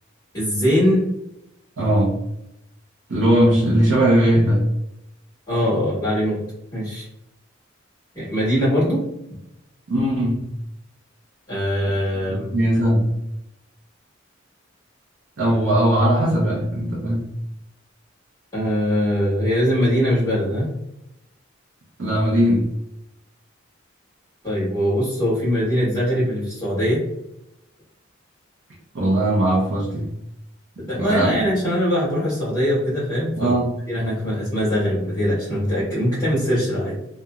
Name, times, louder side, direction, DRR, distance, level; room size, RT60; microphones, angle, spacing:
voice 1, 0.3-1.0 5.5-6.4 6.7-7.1 8.1-9.0 11.5-12.5 18.5-20.7 24.4-27.0 30.8-33.5 33.9-37.0, equal, 15° left, -11 dB, 1.3 m, -21 dB
voice 2, 1.8-2.1 3.1-4.6 9.9-10.5 12.3-13.1 15.4-17.3 22.0-22.7 28.9-30.1 30.9-31.4 33.4-33.7, right 1 dB, 80° right, -6 dB, 0.6 m, -19 dB
2.8 x 2.2 x 2.3 m, 0.85 s
head